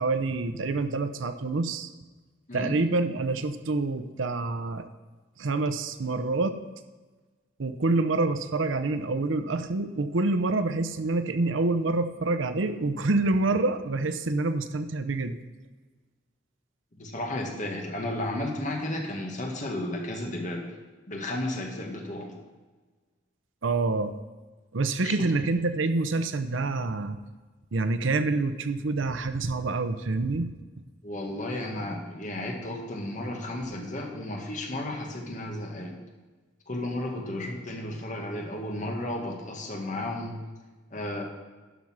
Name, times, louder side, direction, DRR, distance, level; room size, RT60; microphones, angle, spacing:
voice 1, 0.0-1.9 2.5-4.9 5.4-6.6 7.6-15.4 23.6-24.1 24.7-27.2 27.7-30.5, right 3 dB, 85° right, 10 dB, 0.7 m, -27 dB
voice 2, 17.0-20.6 21.1-22.3 25.0-25.1 31.0-35.9 36.7-40.4 40.9-41.2, left 1 dB, 40° left, 2 dB, 1.7 m, -33 dB
11.5 x 5.5 x 6.0 m, 1.3 s
head